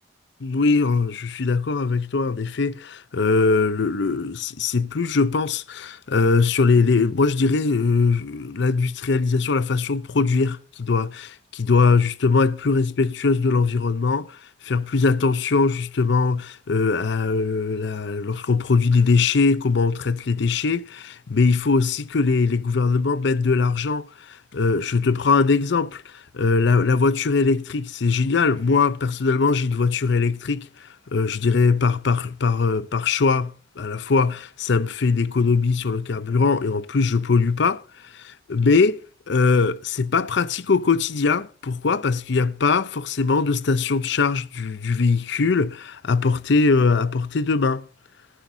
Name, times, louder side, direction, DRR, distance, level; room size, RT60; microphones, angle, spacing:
voice 1, 0.4-14.4 14.6-37.8 38.1-47.8, left 4 dB, 65° left, 0.6 m, -21 dB
18.0 x 9.7 x 2.7 m
head